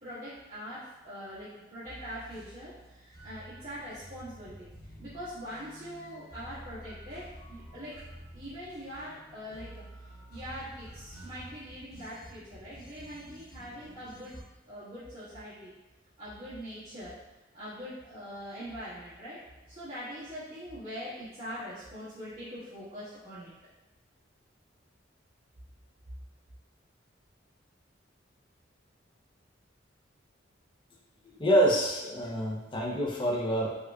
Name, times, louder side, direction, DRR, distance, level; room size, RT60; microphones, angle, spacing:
voice 1, 0.0-8.0 8.3-9.8 10.3-15.7 16.2-17.2 17.5-23.6, equal, 45° right, -16 dB, 1.3 m, -43 dB
sound 1, 1.9-14.4, equal, 50° left, 1.1 m, -50 dB
voice 2, 31.4-33.7, right 1 dB, 25° left, -3 dB, 0.5 m, -26 dB
4.8 x 2.2 x 2.3 m, 1.1 s
head